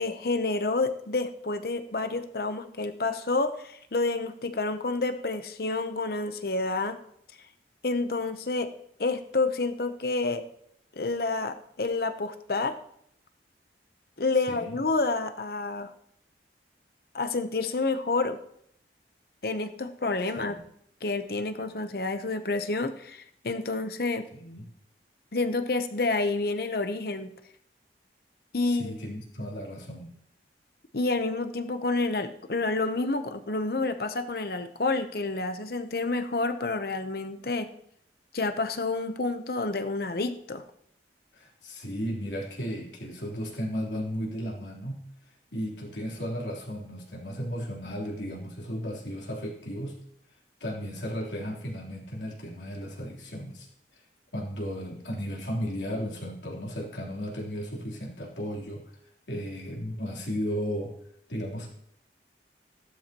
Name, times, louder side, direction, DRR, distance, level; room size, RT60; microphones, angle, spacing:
voice 1, 0.0-7.0 7.8-8.7 9.0-10.4 10.9-12.8 14.2-15.9 17.1-18.4 19.4-20.6 21.0-24.2 25.3-27.3 28.5-28.9 30.9-37.7 38.3-40.6, left 3 dB, 55° left, 9 dB, 0.8 m, -29 dB
voice 2, 14.5-14.8 20.4-20.5 24.3-24.6 28.7-30.1 41.3-45.0 45.5-50.0 50.6-53.7 53.9-54.0 54.3-58.8 59.3-60.9 61.3-61.7, equal, 75° left, -3 dB, 3.5 m, -35 dB
16.0 x 12.0 x 3.0 m, 0.71 s
head